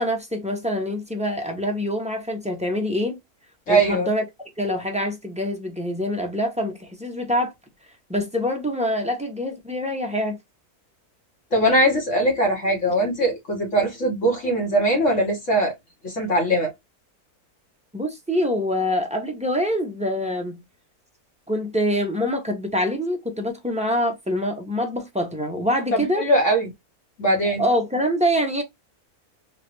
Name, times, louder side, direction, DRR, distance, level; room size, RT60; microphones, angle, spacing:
voice 1, 0.0-3.2 3.7-4.2 4.6-7.5 8.1-10.4 17.9-20.6 21.5-26.2 27.6-28.6, equal, 5° right, 0.6 m, -25 dB
voice 2, 3.7-4.1 11.5-15.7 16.0-16.7 25.9-26.7 27.2-27.6, right 1 dB, 55° left, 1.6 m, -21 dB
4.0 x 2.5 x 3.0 m
omnidirectional pair, 1.6 m